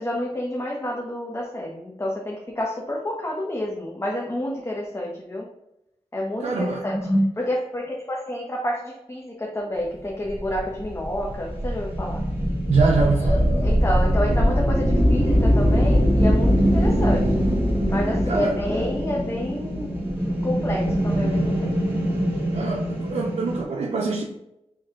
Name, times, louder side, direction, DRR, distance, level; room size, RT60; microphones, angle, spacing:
voice 1, 0.0-5.5 6.1-12.2 13.1-17.4 17.9-19.9 20.4-21.7, equal, 25° left, 0.9 m, -28 dB
voice 2, 6.4-6.9 12.7-13.4 18.3-18.6 22.5-24.2, right 4 dB, 70° right, 0.6 m, -24 dB
sound 1, 10.2-23.6, equal, 15° right, 1.6 m, -22 dB
4.5 x 3.1 x 3.7 m
cardioid pair, 65°, 11 cm